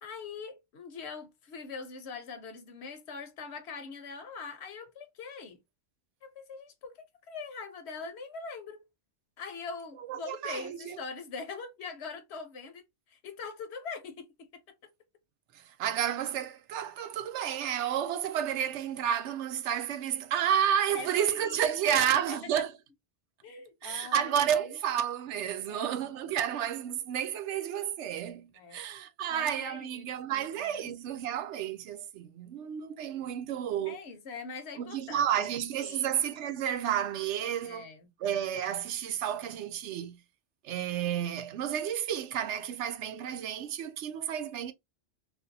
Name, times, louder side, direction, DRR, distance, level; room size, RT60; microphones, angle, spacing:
voice 1, 0.0-5.6 6.2-8.9 9.4-14.5 20.9-22.4 23.4-24.8 25.7-26.0 28.5-28.8 29.3-30.9 33.9-36.1 37.6-38.1, left 5 dB, 70° left, 1.0 m, -43 dB
voice 2, 10.0-11.0 15.5-22.7 23.8-34.0 34.7-37.9 38.2-40.2 40.6-44.7, right 9 dB, 80° right, 0.9 m, -31 dB
3.4 x 2.5 x 2.6 m
omnidirectional pair, 1.2 m